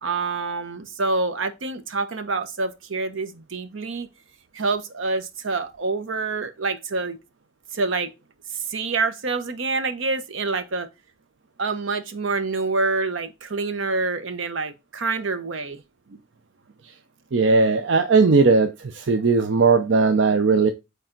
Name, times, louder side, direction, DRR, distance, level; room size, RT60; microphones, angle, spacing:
voice 1, 0.0-4.1 4.5-7.2 7.7-8.1 8.5-10.9 11.6-15.8, right 3 dB, 80° right, 0.9 m, -27 dB
voice 2, 17.3-20.7, right 4 dB, 65° right, 0.5 m, -18 dB
8.6 x 3.4 x 3.9 m
head